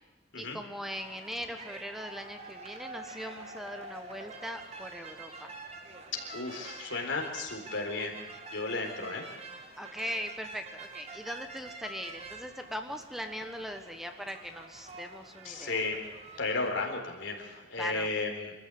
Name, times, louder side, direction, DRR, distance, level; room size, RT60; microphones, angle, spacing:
voice 1, 0.3-5.5 9.8-15.8 17.8-18.1, equal, ahead, 6 dB, 1.2 m, -40 dB
sound 1, 0.8-16.7, right 3 dB, 35° right, 2.3 m, -47 dB
voice 2, 6.3-8.1 8.5-9.2 15.4-16.0 16.4-18.5, left 3 dB, 85° left, 2 dB, 4.1 m, -34 dB
25.0 x 14.0 x 8.4 m, 1.1 s
head